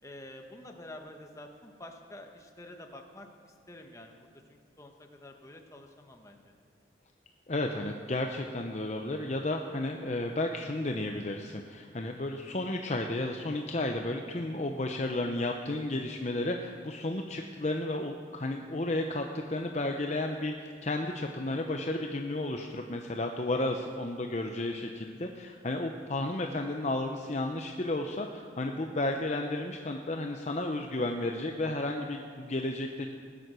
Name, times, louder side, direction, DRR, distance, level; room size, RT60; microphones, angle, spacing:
voice 1, 0.0-6.5, left 1 dB, 15° left, 3 dB, 1.2 m, -49 dB
voice 2, 7.5-33.1, left 2 dB, 40° left, 3 dB, 0.7 m, -33 dB
18.5 x 9.4 x 6.2 m, 2.2 s
head